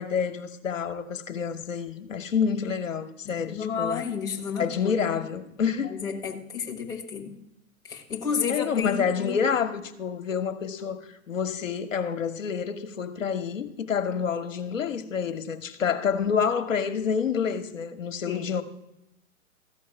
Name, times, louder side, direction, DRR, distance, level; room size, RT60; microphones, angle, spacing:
voice 1, 0.0-4.1 4.6-5.9 8.5-18.6, left 6 dB, 65° left, 1.2 m, -28 dB
voice 2, 3.2-5.1 5.8-7.4 7.8-9.4 18.3-18.5, left 6 dB, 10° left, 1.1 m, -31 dB
14.0 x 4.7 x 8.8 m
figure-of-eight pair, 130°, 42 cm